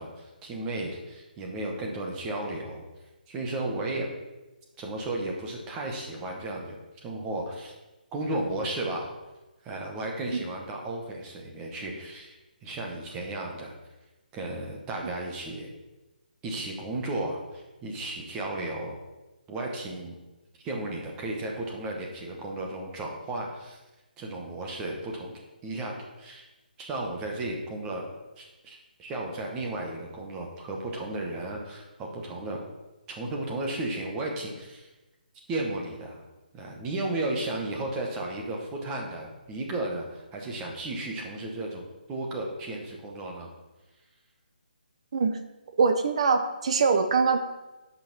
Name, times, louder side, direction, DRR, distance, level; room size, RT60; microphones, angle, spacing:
voice 1, 0.0-2.8 3.3-4.1 4.8-7.7 8.1-9.1 9.6-12.3 12.6-13.7 14.3-15.7 16.4-19.0 19.5-20.2 20.6-23.8 24.2-25.3 25.6-26.4 26.8-28.1 28.4-32.6 33.1-34.9 35.5-36.2 36.5-43.5, right 2 dB, 10° right, 0 dB, 1.0 m, -34 dB
voice 2, 45.8-47.4, right 4 dB, 40° right, 8 dB, 0.7 m, -23 dB
9.1 x 5.4 x 5.9 m, 1.1 s
hypercardioid pair, 170°, 5 cm